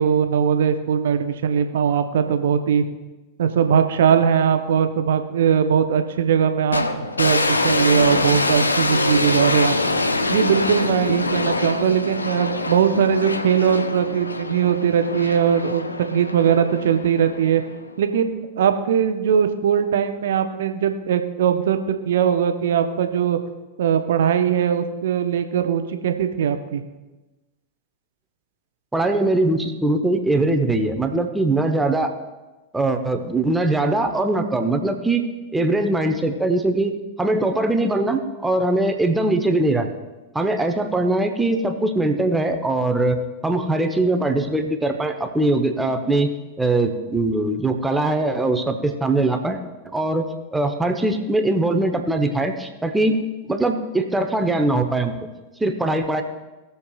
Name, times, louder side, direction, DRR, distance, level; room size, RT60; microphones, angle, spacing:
voice 1, 0.0-2.8 3.4-6.8 7.2-9.8 10.3-17.6 18.0-23.4 23.8-26.8, right 8 dB, 60° right, 8 dB, 0.8 m, -20 dB
sound 1, 6.7-17.9, left 2 dB, 80° left, 0.6 m, -24 dB
voice 2, 28.9-32.1 32.7-35.2 35.5-39.9 40.3-43.2 43.4-46.3 46.6-49.6 49.9-50.3 50.5-53.2 53.5-55.1 55.6-56.2, right 2 dB, 5° right, 5 dB, 1.0 m, -21 dB
19.0 x 6.9 x 2.4 m, 1.1 s
figure-of-eight pair, 90°, 0 cm